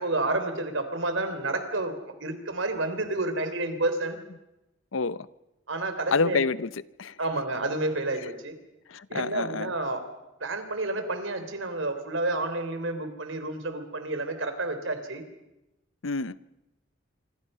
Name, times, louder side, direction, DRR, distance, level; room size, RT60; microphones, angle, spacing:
voice 1, 0.0-1.9 2.2-4.2 5.7-6.4 7.2-8.5 9.1-10.0 10.4-15.2, right 2 dB, 80° right, 3.6 m, -30 dB
voice 2, 4.9-5.3 6.1-7.2 8.9-9.7 16.0-16.4, left 4 dB, 85° left, 0.7 m, -28 dB
26.5 x 25.5 x 5.6 m
head